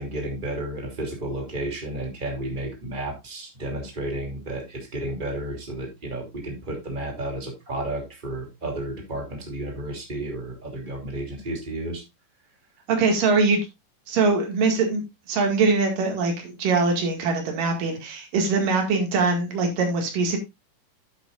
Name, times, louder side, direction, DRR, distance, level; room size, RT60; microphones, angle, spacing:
voice 1, 0.0-12.0, right 1 dB, 15° right, 1 dB, 2.7 m, -32 dB
voice 2, 12.9-13.6 14.1-20.4, right 4 dB, 90° right, 3 dB, 3.8 m, -22 dB
10.0 x 8.8 x 2.5 m, 0.22 s
omnidirectional pair, 3.7 m